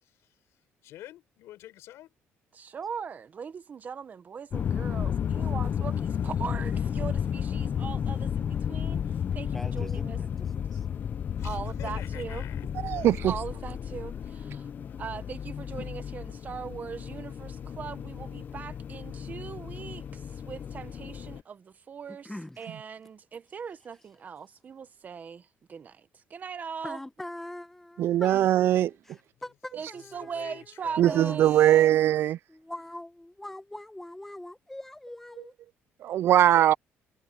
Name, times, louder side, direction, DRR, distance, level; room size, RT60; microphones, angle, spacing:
voice 1, 0.0-2.1 11.4-13.3 29.4-29.5 29.9-31.9, left 14 dB, 80° left, 4.9 m, -49 dB
voice 2, 2.5-9.0 9.3-10.2 11.4-12.4 13.3-14.7 15.0-22.3 22.6-27.0 29.7-31.9, right 6 dB, 35° right, 1.1 m, -40 dB
sound 1, 4.5-21.4, left 8 dB, 45° left, 0.7 m, -32 dB
voice 3, 9.5-10.9 22.1-22.7 26.8-30.7 31.0-31.8 32.5-35.5, left 1 dB, 5° left, 1.3 m, -43 dB
voice 4, 12.8-13.3 28.0-28.9 31.0-32.4 36.0-36.7, right 12 dB, 60° right, 0.3 m, -21 dB
cardioid pair, 125°, 5 cm